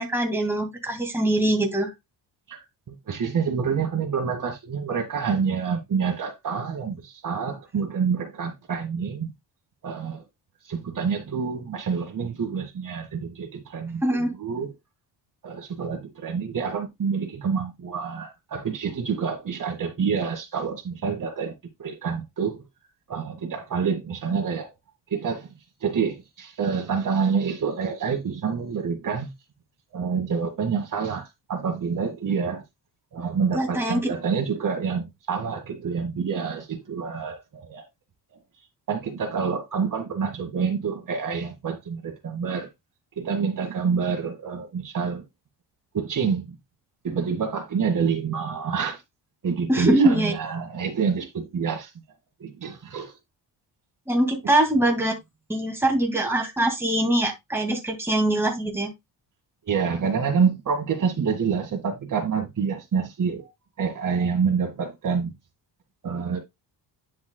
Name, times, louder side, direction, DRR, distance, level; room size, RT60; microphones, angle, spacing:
voice 1, 0.0-1.9 14.0-14.3 33.5-34.1 49.7-50.3 54.1-55.1 55.5-58.9, right 1 dB, 5° right, 2.1 m, -23 dB
voice 2, 2.5-9.3 9.8-10.2 10.6-14.7 15.4-21.5 21.8-22.6 23.1-24.7 25.1-25.5 25.8-29.3 29.9-32.6 33.1-37.8 38.9-42.7 43.2-45.3 45.9-46.5 47.0-49.0 49.4-51.9 52.4-53.1 54.4-54.5 59.7-63.5 63.8-65.3 66.0-66.4, right 6 dB, 45° right, 1.9 m, -27 dB
10.5 x 5.9 x 2.2 m
cardioid pair, 135°, 43 cm